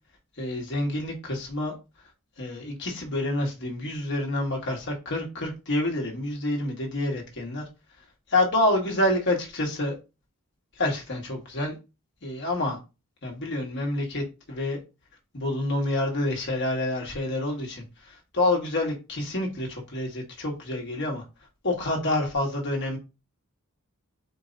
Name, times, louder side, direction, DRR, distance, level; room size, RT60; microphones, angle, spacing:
voice 1, 0.4-1.7 2.4-7.6 8.3-10.0 10.8-11.7 12.2-12.8 13.2-14.8 15.3-21.2 21.6-23.0, left 1 dB, 55° left, 1.7 m, -28 dB
4.6 x 2.9 x 3.9 m
head